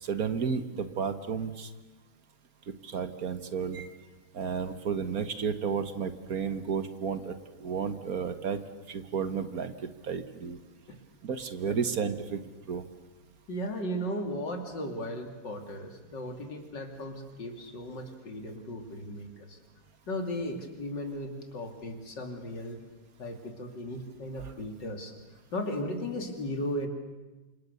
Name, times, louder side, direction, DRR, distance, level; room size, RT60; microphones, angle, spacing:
voice 1, 0.0-1.7 2.8-3.9 4.3-7.3 7.6-8.6 8.9-10.6 11.2-12.4 12.7-12.8 24.4-24.5, right 6 dB, 55° right, 10 dB, 1.7 m, -32 dB
voice 2, 13.5-19.6 20.1-22.8 23.2-25.1 25.5-26.9, equal, 80° left, 5 dB, 3.4 m, -36 dB
29.0 x 26.0 x 6.9 m, 1.2 s
omnidirectional pair, 1.9 m